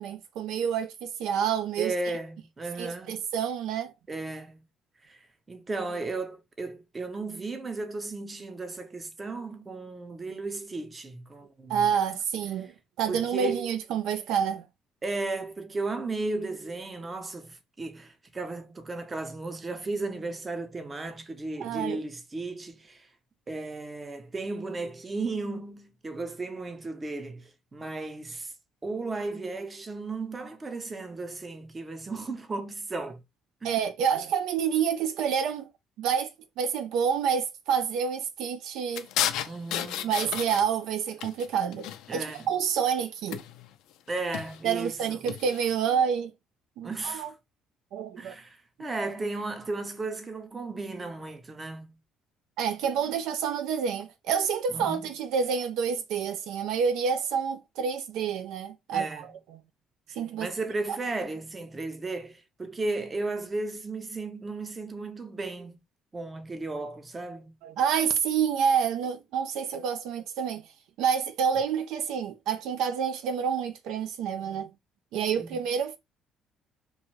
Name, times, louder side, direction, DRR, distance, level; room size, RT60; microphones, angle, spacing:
voice 1, 0.0-1.9 2.8-3.9 11.7-12.7 13.0-14.7 21.6-22.0 33.6-35.7 36.0-36.3 36.6-39.1 40.0-43.4 44.6-46.3 46.8-47.3 47.9-48.3 52.6-59.6 60.2-60.5 60.9-61.0 67.6-70.6 71.0-74.7 75.1-76.0, right 7 dB, 80° right, 0.3 m, -28 dB
voice 2, 1.8-3.2 4.1-4.6 5.1-5.2 5.5-11.8 12.6-12.7 13.1-13.7 15.0-23.1 23.5-28.5 28.8-33.2 33.6-33.7 39.5-40.1 42.1-42.5 44.1-45.2 46.8-47.3 48.2-52.0 54.7-55.1 58.9-59.2 60.4-65.8 66.1-67.5 75.4-75.6, right 3 dB, 25° right, 0.6 m, -35 dB
sound 1, 39.0-40.9 41.2-42.5 43.3-43.7 44.2-44.6 45.3-45.7, left 11 dB, 85° left, 0.4 m, -33 dB
2.5 x 2.2 x 3.0 m
cardioid pair, 90°, 0 cm